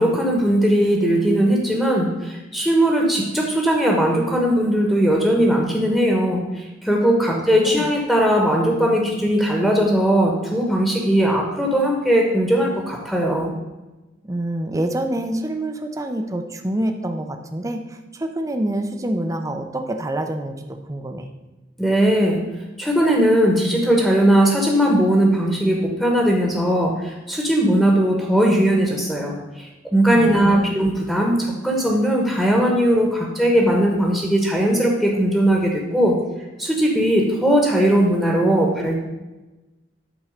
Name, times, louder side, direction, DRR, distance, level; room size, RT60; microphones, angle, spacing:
voice 1, 0.0-13.5 21.8-22.4 22.8-36.2 36.6-39.0, right 1 dB, 5° left, -1 dB, 1.2 m, -19 dB
voice 2, 7.3-7.9 14.2-20.6 20.9-21.3 30.1-30.7, right 1 dB, 20° right, 5 dB, 0.6 m, -26 dB
8.9 x 4.4 x 6.5 m, 1.1 s
head